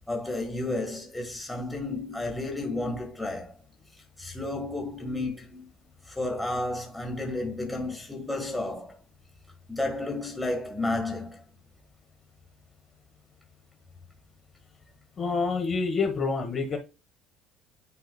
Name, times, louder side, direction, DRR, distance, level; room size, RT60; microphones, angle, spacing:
voice 1, 0.1-3.5 4.2-5.7 6.1-9.0 9.7-11.4, left 2 dB, 5° left, 1.7 m, -32 dB
voice 2, 15.2-16.8, left 4 dB, 30° left, 1.3 m, -27 dB
9.6 x 4.9 x 2.3 m
cardioid pair, 170°, 0 cm